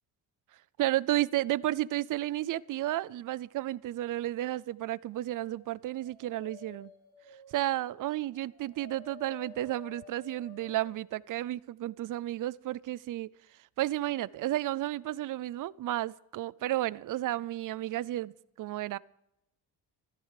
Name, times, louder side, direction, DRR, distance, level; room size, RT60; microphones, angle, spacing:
voice 1, 0.8-6.9 7.5-13.3 13.8-19.0, right 15 dB, 50° right, 21 dB, 0.5 m, -32 dB
Dog, 5.4-11.0, left 6 dB, 40° left, 4.8 m, -53 dB
14.5 x 14.0 x 4.8 m, 0.85 s
cardioid pair, 140°, 42 cm